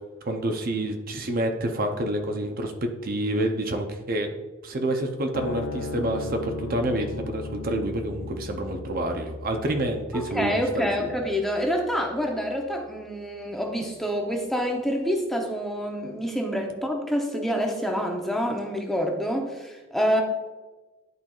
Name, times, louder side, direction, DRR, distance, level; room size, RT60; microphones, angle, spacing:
voice 1, 0.2-4.3 4.6-11.1, right 1 dB, 45° right, 4 dB, 0.6 m, -28 dB
sound 1, 5.3-12.0, left 3 dB, 85° left, 0.6 m, -37 dB
voice 2, 10.1-20.2, equal, ahead, 1 dB, 0.7 m, -27 dB
11.0 x 4.4 x 2.4 m, 1.2 s
head